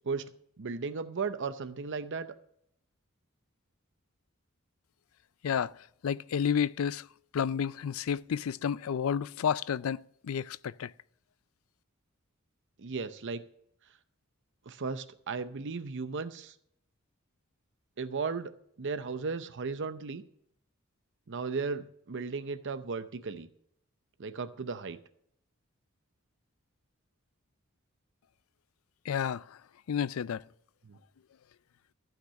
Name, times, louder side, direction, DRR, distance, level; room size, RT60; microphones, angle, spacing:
voice 1, 0.6-2.3 12.8-13.4 14.7-16.5 18.0-18.5 18.8-20.2 21.3-23.5 24.2-25.0 30.8-31.0, right 4 dB, 60° right, 0.7 m, -35 dB
voice 2, 5.4-7.1 7.3-10.9 29.1-29.6 29.9-30.4, left 7 dB, 70° left, 0.4 m, -31 dB
14.5 x 5.9 x 6.3 m
head